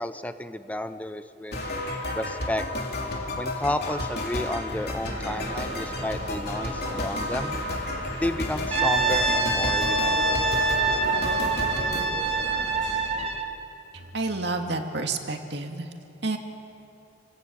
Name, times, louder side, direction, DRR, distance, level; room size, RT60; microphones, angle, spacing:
voice 1, 0.0-1.6 2.2-2.6 3.4-7.5 8.2-10.4, left 1 dB, 10° left, 10 dB, 0.7 m, -31 dB
sound 1, 1.5-12.0, left 1 dB, 55° left, 3.2 m, -31 dB
sound 2, 4.7-13.3, right 1 dB, 90° right, 5.0 m, -38 dB
Brass instrument, 8.7-13.5, right 3 dB, 35° right, 1.9 m, -25 dB
voice 2, 14.1-15.9 16.2-16.4, right 3 dB, 65° right, 4 dB, 2.2 m, -29 dB
29.5 x 19.0 x 8.7 m, 2.9 s
head